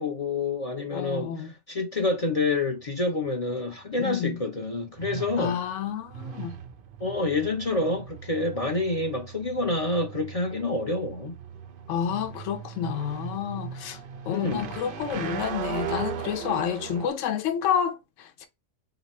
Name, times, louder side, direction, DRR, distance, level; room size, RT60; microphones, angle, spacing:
voice 1, 0.0-5.6 7.0-11.3 14.3-14.7, left 2 dB, 40° left, 0.5 m, -28 dB
voice 2, 0.9-1.5 4.0-4.4 5.4-6.6 11.9-14.0 14.3-18.5, left 8 dB, 65° left, 1.0 m, -29 dB
sound 1, 2.1-17.1, right 8 dB, 70° right, 0.5 m, -38 dB
4.0 x 2.9 x 4.1 m
omnidirectional pair, 1.5 m